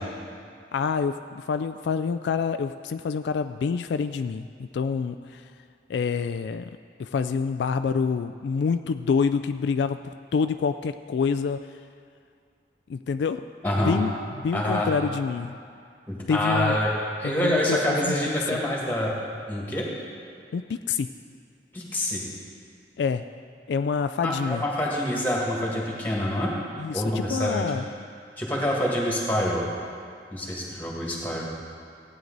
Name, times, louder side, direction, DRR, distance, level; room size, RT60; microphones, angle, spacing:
voice 1, 0.7-5.4 5.9-6.7 7.0-11.6 12.9-13.4 13.8-14.1 14.4-15.6 16.3-16.8 17.2-18.2 18.5-18.6 20.5-21.1 23.0-23.2 23.7-24.6 26.8-27.8, left 5 dB, 70° left, 10 dB, 0.3 m, -27 dB
voice 2, 13.6-14.0 14.5-14.9 16.1-16.9 17.2-19.1 19.5-19.9 21.7-22.2 24.2-26.5 26.9-27.7 28.4-29.6 30.3-31.5, left 1 dB, 10° left, -3 dB, 1.9 m, -26 dB
15.5 x 9.4 x 4.0 m, 2.3 s
head